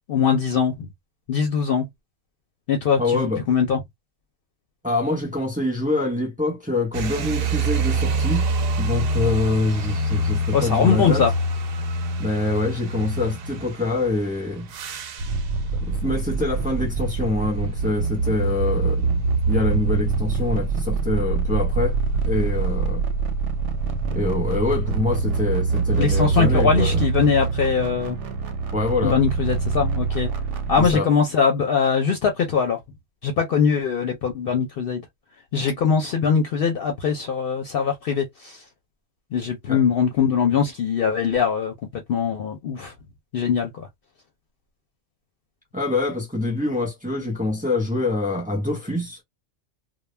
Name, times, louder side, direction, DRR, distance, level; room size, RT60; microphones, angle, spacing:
voice 1, 0.1-0.9 1.3-1.9 2.7-3.8 10.5-11.3 26.0-28.2 29.0-30.3 30.7-32.8 33.2-35.0 35.5-38.6 39.3-42.9 43.3-43.9, left 6 dB, 60° left, 0.7 m, -22 dB
voice 2, 3.0-3.4 4.8-8.5 8.8-11.2 12.2-14.7 15.8-23.0 24.1-27.0 28.7-29.2 30.8-31.1 39.7-39.8 45.7-49.2, left 2 dB, 10° right, 0.9 m, -25 dB
sound 1, 6.9-23.0 23.7-25.0, right 1 dB, 60° right, 0.7 m, -28 dB
sound 2, 15.2-30.9, right 4 dB, 90° right, 0.9 m, -24 dB
2.2 x 2.0 x 3.2 m
omnidirectional pair, 1.2 m